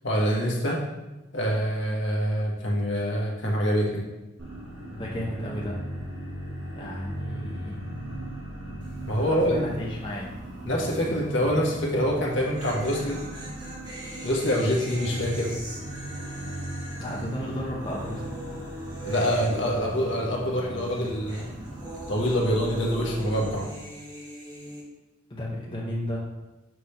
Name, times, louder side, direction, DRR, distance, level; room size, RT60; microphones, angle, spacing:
voice 1, 0.0-0.8 1.3-4.0 9.1-9.7 10.6-13.2 14.2-15.5 19.0-21.5 22.1-23.7, equal, 60° left, -2 dB, 1.4 m, -25 dB
sound 1, 4.4-23.6, right 1 dB, 65° right, 2.1 m, -38 dB
voice 2, 4.9-5.8 6.7-7.9 9.0-10.3 17.0-18.4 25.3-26.2, left 1 dB, 25° left, -5 dB, 0.8 m, -34 dB
sound 2, 8.8-9.2 9.4-9.5 12.2-20.5 20.8-24.8, equal, 20° right, 1.2 m, -41 dB
6.0 x 3.4 x 5.8 m, 1.1 s
head